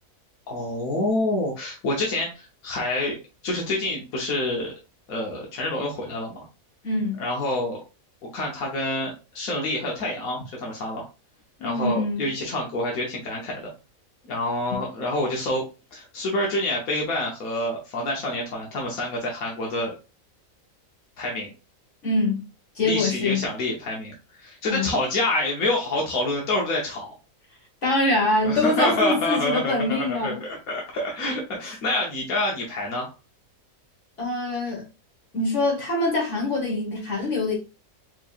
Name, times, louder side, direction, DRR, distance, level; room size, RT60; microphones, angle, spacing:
voice 1, 0.5-4.7 5.1-6.5 7.2-7.8 8.3-11.0 11.6-13.7 14.3-15.7 15.9-19.9 21.2-21.5 22.8-27.1 28.4-33.1, left 1 dB, 85° left, 1.4 m, -27 dB
voice 2, 6.8-7.2 11.6-12.3 14.7-14.8 22.0-22.4 22.7-23.4 24.7-24.9 27.8-30.4 34.2-34.8 35.3-37.6, left 2 dB, 60° left, 1.6 m, -24 dB
4.5 x 2.9 x 2.4 m
omnidirectional pair, 1.5 m